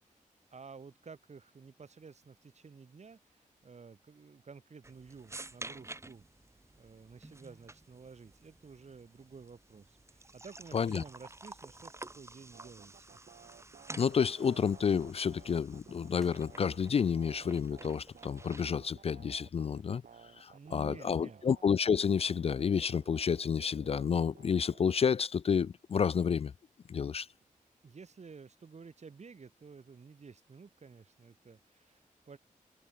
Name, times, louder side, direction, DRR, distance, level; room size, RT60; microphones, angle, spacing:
voice 1, 0.5-6.2 6.8-13.2 20.5-21.4 27.8-32.4, right 5 dB, 55° right, 4.9 m, -52 dB
sound 1, 4.8-18.8, right 2 dB, 20° right, 1.9 m, -51 dB
voice 2, 10.7-11.0 14.0-20.0 20.4-26.5 26.9-27.3, left 6 dB, 45° left, 0.4 m, -30 dB
sound 2, 12.5-25.3, right 7 dB, 75° right, 4.1 m, -56 dB
sound 3, 14.6-19.8, equal, ahead, 3.6 m, -67 dB
wide cardioid pair, 85°, 14 cm